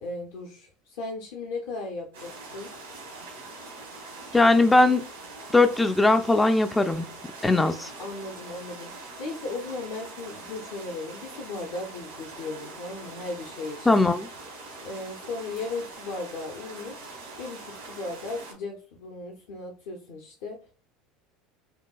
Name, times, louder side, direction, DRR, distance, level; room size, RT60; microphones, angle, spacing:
voice 1, 0.0-2.7 8.0-14.0 14.8-20.6, left 3 dB, 65° left, 0.7 m, -36 dB
sound 1, 2.1-18.5, right 3 dB, 80° right, 1.3 m, -43 dB
voice 2, 4.3-5.1 5.5-7.1 7.4-7.9 13.9-14.3, left 2 dB, 10° left, 0.3 m, -20 dB
5.4 x 2.3 x 2.3 m
figure-of-eight pair, 75°, 0 cm